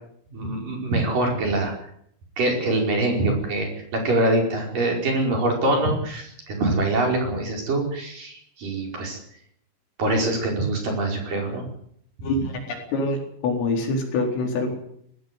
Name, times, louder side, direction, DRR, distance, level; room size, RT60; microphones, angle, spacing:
voice 1, 0.3-1.7 2.4-9.2 10.0-11.6, right 2 dB, 40° right, 1 dB, 6.3 m, -24 dB
voice 2, 12.2-13.2 13.4-14.7, left 2 dB, 75° left, 2 dB, 6.8 m, -25 dB
19.0 x 15.5 x 9.5 m, 0.69 s
omnidirectional pair, 5.9 m